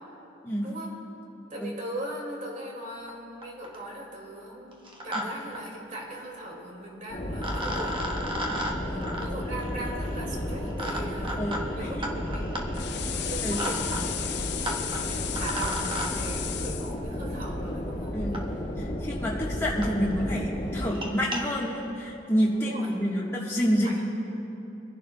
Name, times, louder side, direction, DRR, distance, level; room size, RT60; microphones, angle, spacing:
voice 1, 0.6-0.9 1.5-8.1 9.2-12.8 13.2-14.0 14.6-18.1 22.5-22.9 23.8-24.0, right 1 dB, 45° right, -1 dB, 2.2 m, -39 dB
sound 1, 3.1-3.2 3.4-3.9 4.7-5.2 5.5-5.6 6.9-7.0 7.4-16.1 17.4-17.5 18.3-18.4 19.1-19.2 19.4-19.5 19.8-19.9 20.2-20.4 20.8-21.4, equal, 30° right, 1.2 m, -35 dB
sound 2, 7.1-20.9, equal, 45° left, 1.7 m, -33 dB
voice 2, 8.9-9.2 11.4-12.1 13.4-13.6 18.1-18.4 18.8-24.0, equal, 15° left, -6 dB, 1.4 m, -28 dB
sound 3, 12.7-16.9, left 10 dB, 65° left, 0.6 m, -34 dB
26.0 x 11.0 x 2.3 m, 2.9 s
head